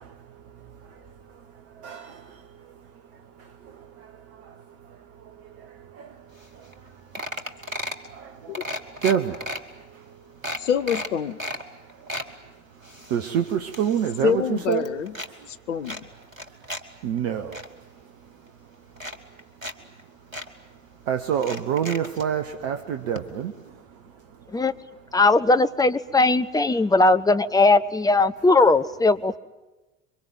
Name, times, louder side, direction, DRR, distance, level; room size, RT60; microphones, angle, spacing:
sound 1, 6.4-6.5 6.7-6.9 7.2-8.1 8.5-9.6 10.1-10.2 10.4-11.6 11.9-12.3 12.8-14.3 14.6-15.3 15.8-16.8 17.2-17.7 18.5-18.6 19.0-19.7 20.0-20.1 20.3-20.5 21.3-22.3 23.2-23.3 23.5-23.6, equal, 90° right, 1.6 m, -34 dB
voice 1, 9.0-9.3 13.1-14.8 17.0-17.5 21.1-23.5, right 9 dB, 55° right, 7 dB, 1.5 m, -25 dB
voice 2, 10.6-11.4 14.2-15.1 15.5-16.1, left 8 dB, 70° left, 12 dB, 1.2 m, -26 dB
voice 3, 25.1-29.4, left 3 dB, 10° left, 10 dB, 1.0 m, -19 dB
27.0 x 24.0 x 9.3 m, 1.1 s
figure-of-eight pair, 70°, 39 cm